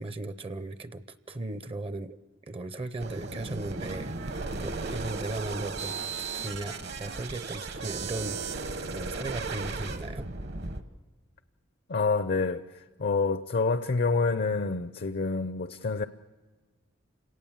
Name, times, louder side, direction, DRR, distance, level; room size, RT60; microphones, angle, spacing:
voice 1, 0.0-2.2 2.5-10.3, right 2 dB, 30° right, 0.6 m, -37 dB
sound 1, 3.0-10.8, right 4 dB, 60° right, 1.2 m, -35 dB
voice 2, 11.9-16.1, left 4 dB, 55° left, 0.6 m, -27 dB
28.5 x 18.0 x 7.3 m
head